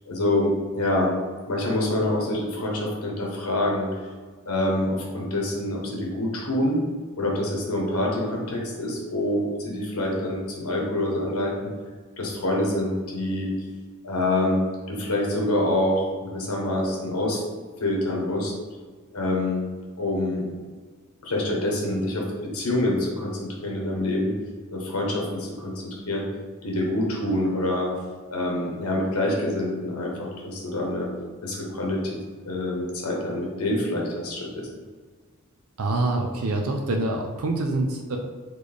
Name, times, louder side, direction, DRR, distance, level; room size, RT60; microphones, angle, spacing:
voice 1, 0.1-1.1 1.5-3.9 4.4-6.8 7.2-11.7 12.2-13.5 14.0-17.4 17.8-18.5 19.1-19.6 20.0-20.5 21.2-24.3 24.7-26.3 26.6-27.9 28.3-31.1 31.4-32.2 32.5-34.7, left 1 dB, 80° left, -1 dB, 1.1 m, -26 dB
voice 2, 35.8-38.2, right 2 dB, 75° right, 2 dB, 0.5 m, -25 dB
4.2 x 3.2 x 3.4 m, 1.5 s
head